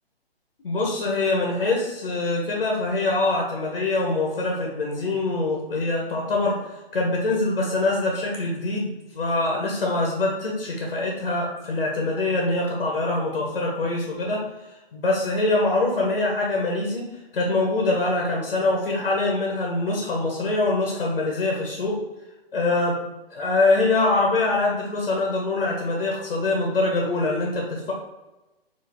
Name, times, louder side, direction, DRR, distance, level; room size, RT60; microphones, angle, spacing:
voice 1, 0.6-14.4 14.9-17.0 17.3-22.0 22.5-23.0 23.3-27.9, left 2 dB, 60° left, -2 dB, 1.2 m, -24 dB
4.6 x 3.0 x 3.5 m, 1.0 s
figure-of-eight pair, 135°, 31 cm